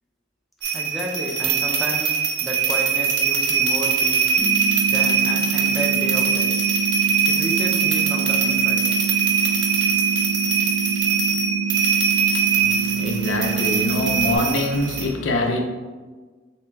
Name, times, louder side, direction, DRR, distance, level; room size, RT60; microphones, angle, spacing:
sound 1, 0.6-15.1, right 6 dB, 75° right, 0.5 m, -22 dB
voice 1, 0.7-4.3 4.9-6.6 7.3-8.9, equal, ahead, 0.4 m, -31 dB
sound 2, 4.4-14.4, right 5 dB, 55° left, 0.7 m, -27 dB
voice 2, 12.6-15.6, left 1 dB, 85° left, 0.5 m, -24 dB
3.2 x 2.8 x 3.3 m
head